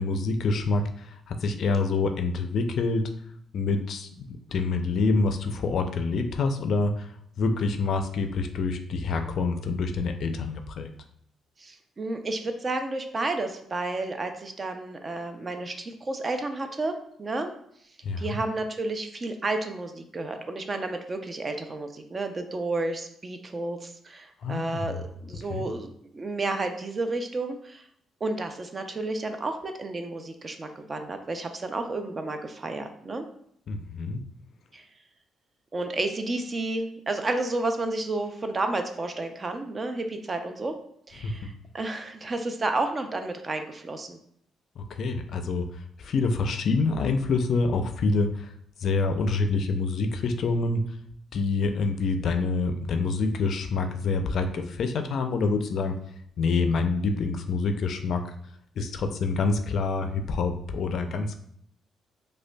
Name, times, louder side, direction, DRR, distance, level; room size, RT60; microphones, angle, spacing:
voice 1, 0.0-3.0 3.5-7.1 7.4-10.9 18.0-18.4 24.4-25.0 25.5-25.7 33.7-34.2 41.2-41.3 44.8-45.7 46.0-48.5 48.8-50.8 51.3-55.9 56.4-58.2 58.8-61.4, left 3 dB, 65° left, 7 dB, 0.4 m, -26 dB
voice 2, 11.6-17.5 18.2-27.9 28.2-33.3 34.7-34.9 35.7-40.8 41.1-44.2, right 2 dB, 30° right, 6 dB, 0.4 m, -31 dB
5.0 x 2.2 x 2.2 m, 0.68 s
cardioid pair, 90°, 0 cm